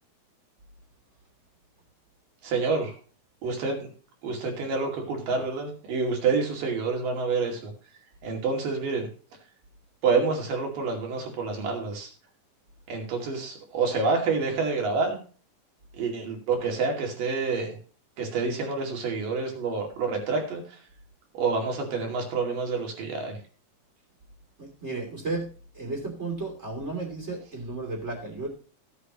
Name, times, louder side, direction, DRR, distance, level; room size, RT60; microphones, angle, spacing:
voice 1, 2.4-2.9 3.4-3.9 4.2-7.7 8.2-9.1 10.0-12.1 12.9-15.2 16.0-17.8 18.2-20.6 21.3-23.4, right 4 dB, 75° right, 1 dB, 4.1 m, -28 dB
voice 2, 24.6-25.5 25.7-28.5, right 3 dB, 20° right, 0 dB, 2.8 m, -33 dB
16.0 x 8.3 x 3.0 m, 0.39 s
omnidirectional pair, 4.0 m